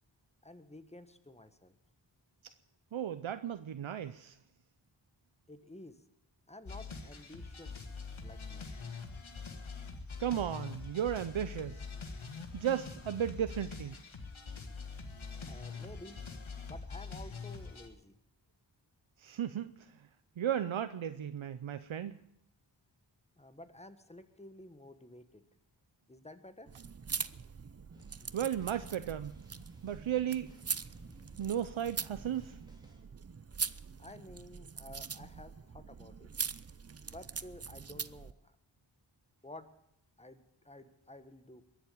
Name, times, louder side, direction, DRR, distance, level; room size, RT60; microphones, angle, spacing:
voice 1, 0.4-1.7 5.5-6.0 6.5-8.0 8.2-8.7 15.4-16.2 16.7-18.2 23.4-25.4 26.1-26.7 34.0-36.3 37.0-38.6 39.4-39.7 40.2-41.6, left 1 dB, 15° left, 1.4 m, -52 dB
voice 2, 2.9-4.4 10.2-11.8 12.5-14.0 19.2-20.0 20.4-22.2 28.3-29.4 29.8-30.5 31.4-32.6, right 10 dB, 80° right, 0.6 m, -35 dB
sound 1, 6.7-17.9, left 4 dB, 90° left, 1.6 m, -44 dB
sound 2, 26.7-38.3, right 6 dB, 35° right, 0.6 m, -42 dB
sound 3, 27.9-33.1, equal, 10° right, 3.2 m, -59 dB
22.0 x 7.3 x 8.6 m
wide cardioid pair, 50°, 46 cm